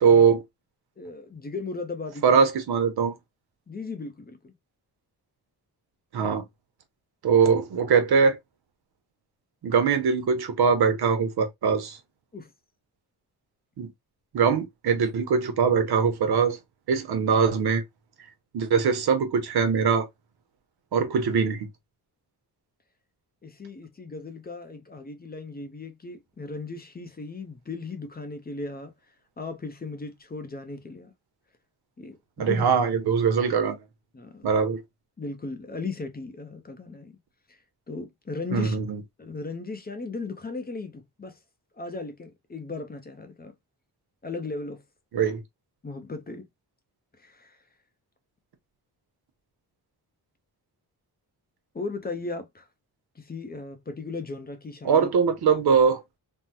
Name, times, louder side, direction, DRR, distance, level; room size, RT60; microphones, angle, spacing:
voice 1, 0.0-0.4 2.2-3.1 6.1-6.4 7.2-8.4 9.6-12.0 13.8-13.9 14.3-16.6 16.9-17.8 18.5-20.1 20.9-21.7 32.4-33.8 34.4-34.8 38.5-39.0 45.1-45.4 54.8-56.0, right 6 dB, 90° right, 0.9 m, -22 dB
voice 2, 1.0-2.5 3.7-4.5 12.3-12.5 23.4-28.9 29.4-31.1 32.0-32.7 34.1-34.4 35.2-37.1 37.5-37.6 37.9-38.8 39.2-41.4 41.8-43.5 44.2-44.8 45.8-46.5 47.2-47.6 51.7-52.7 53.2-55.1, left 3 dB, 25° left, 0.5 m, -36 dB
3.6 x 2.0 x 2.7 m
wide cardioid pair, 150°, 38 cm